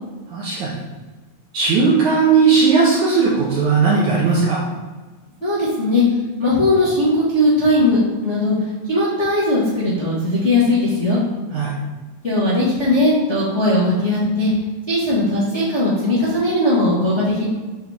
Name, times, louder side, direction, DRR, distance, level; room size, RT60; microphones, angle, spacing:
voice 1, 0.3-0.7 1.5-4.6 11.5-11.8, right 5 dB, 70° right, -4 dB, 1.9 m, -16 dB
voice 2, 5.4-6.0 6.4-8.5 8.9-11.2 12.2-14.5 14.9-17.5, left 1 dB, 35° left, -11 dB, 1.1 m, -18 dB
8.1 x 4.1 x 3.6 m, 1.3 s
omnidirectional pair, 4.4 m